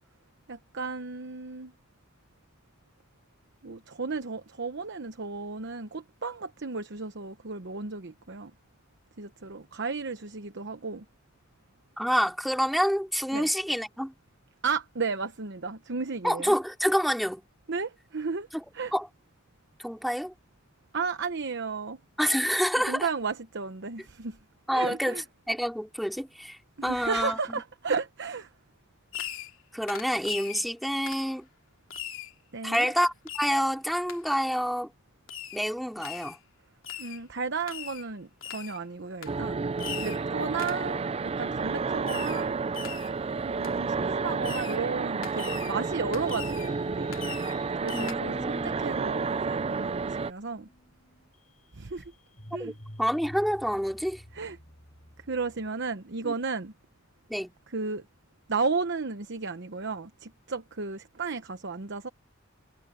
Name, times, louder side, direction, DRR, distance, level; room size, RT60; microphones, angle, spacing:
voice 1, 0.5-1.7 3.6-8.5 9.2-11.0 13.3-13.5 14.6-16.5 17.7-18.5 18.7-18.9 20.9-22.0 22.9-24.4 24.7-25.2 26.8-28.5 32.5-32.9 37.0-39.6 40.0-42.6 43.4-47.2 47.8-50.7 51.7-52.0 52.5-52.7 54.3-54.6 55.3-56.7 57.7-58.0 58.5-62.1, right 4 dB, 60° right, 1.0 m, -33 dB
voice 2, 12.0-14.1 16.2-17.4 18.5-18.6 18.9-19.1 19.8-20.3 22.2-23.1 24.7-27.6 29.7-31.5 32.6-34.9 35.5-36.4 47.9-48.8 52.5-52.7 53.0-54.2 56.2-56.3 57.3-57.5, equal, ahead, 3.1 m, -28 dB
Fireworks, 29.1-29.6 29.9-30.6 31.1-31.3 31.9-32.3 32.7-32.9 33.3-33.6 34.1-34.2 35.3-35.6 36.0-36.4 36.8-37.2 37.7-38.1 38.4-38.8 39.2-39.4 39.8-40.2 40.6-40.9 42.1-42.5 42.7-43.1 43.6-43.8 44.4-44.8 45.2-45.7 46.1-46.7 47.1-47.6 47.9-48.1, left 10 dB, 75° left, 3.1 m, -40 dB
sound 1, 39.3-50.3, right 4 dB, 30° right, 0.4 m, -31 dB
sound 2, 45.3-55.9, left 1 dB, 40° left, 7.5 m, -52 dB
head